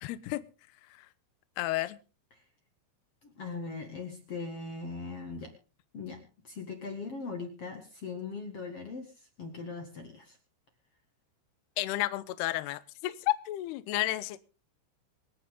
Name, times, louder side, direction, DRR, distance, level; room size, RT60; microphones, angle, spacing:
voice 1, 0.0-0.4 1.6-2.0 11.8-14.4, left 17 dB, 75° left, 15 dB, 2.5 m, -31 dB
voice 2, 3.2-5.5 5.9-10.4, left 4 dB, 55° left, 5 dB, 1.7 m, -40 dB
26.0 x 9.3 x 3.7 m, 0.34 s
omnidirectional pair, 5.6 m